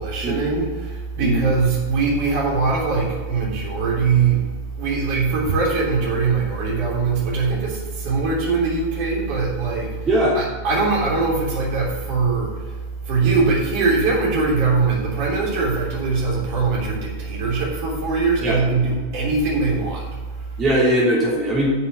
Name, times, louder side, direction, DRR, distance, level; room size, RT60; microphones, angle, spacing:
voice 1, 0.0-4.5 4.8-12.8 13.0-20.6, right 4 dB, 45° right, -3 dB, 3.3 m, -22 dB
voice 2, 20.6-21.7, equal, 20° right, -5 dB, 3.0 m, -19 dB
9.7 x 5.8 x 6.7 m, 1.4 s
figure-of-eight pair, 90°, 0 cm